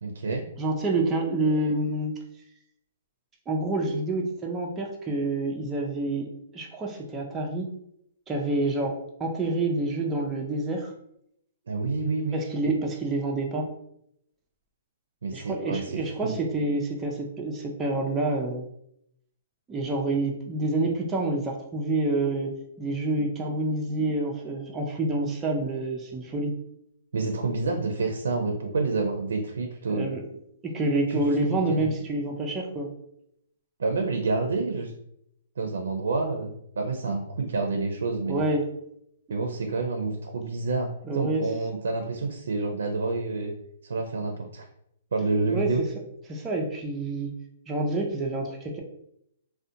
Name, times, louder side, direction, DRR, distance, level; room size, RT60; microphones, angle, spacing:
voice 1, 0.0-0.4 11.7-12.4 15.2-16.3 27.1-30.1 31.1-31.2 31.5-31.9 33.8-34.9 35.6-38.4 39.3-40.9 41.1-43.5 43.9-44.6 45.1-45.8, right 3 dB, 85° right, 3 dB, 0.4 m, -28 dB
voice 2, 0.6-2.2 3.5-7.7 8.3-10.9 12.3-13.7 15.3-18.7 19.7-26.5 29.9-30.2 30.6-32.9 38.3-38.7 41.1-41.5 45.5-45.8 46.3-47.3 47.7-48.8, right 2 dB, 15° right, -1 dB, 0.4 m, -28 dB
2.5 x 2.1 x 2.7 m, 0.76 s
hypercardioid pair, 145°, 0 cm